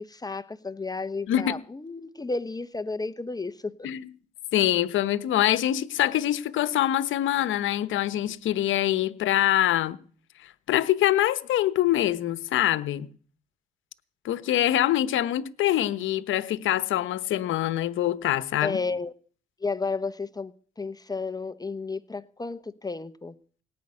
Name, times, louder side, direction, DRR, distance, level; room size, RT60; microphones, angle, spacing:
voice 1, 0.0-3.7 18.6-19.1 19.6-23.3, left 3 dB, 20° left, 0.8 m, -32 dB
voice 2, 4.5-10.0 10.7-13.1 14.2-18.8, left 13 dB, 80° left, 1.0 m, -24 dB
18.0 x 6.5 x 9.7 m
cardioid pair, 90°, 20 cm